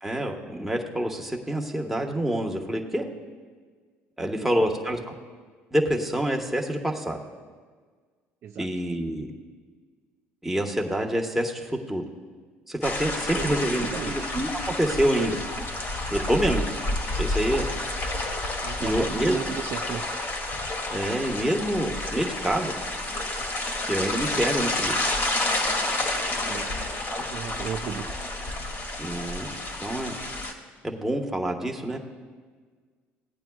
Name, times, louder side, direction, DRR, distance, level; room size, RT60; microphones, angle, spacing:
voice 1, 0.0-3.0 4.2-5.1 5.7-7.2 8.6-9.3 10.4-12.0 12.7-14.5 14.8-15.4 16.1-16.6 17.2-17.7 18.8-19.3 20.9-22.7 23.9-24.9 27.1-27.2 29.0-29.5 29.8-30.2 30.8-32.0, right 1 dB, 5° right, 1 dB, 1.2 m, -27 dB
sound 1, 12.8-30.5, left 2 dB, 45° left, 1.7 m, -30 dB
voice 2, 13.1-14.3 18.6-20.0 26.4-26.7 27.3-28.1, right 7 dB, 50° right, 4 dB, 0.5 m, -35 dB
17.0 x 8.8 x 2.4 m, 1.5 s
supercardioid pair, 75°, 5 cm